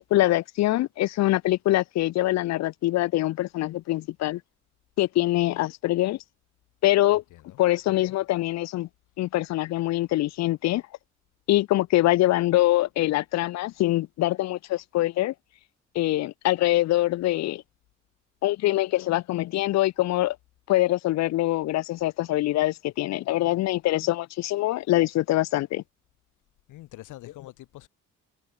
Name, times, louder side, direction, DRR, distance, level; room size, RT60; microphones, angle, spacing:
voice 1, 0.0-4.4 5.0-6.2 6.8-7.2 7.6-8.9 9.2-10.8 11.5-15.3 16.0-17.6 18.4-20.4 20.7-25.8, left 16 dB, 60° left, 0.4 m, -24 dB
voice 2, 26.7-27.9, left 16 dB, 90° left, 2.1 m, -45 dB
cardioid pair, 90°, 30 cm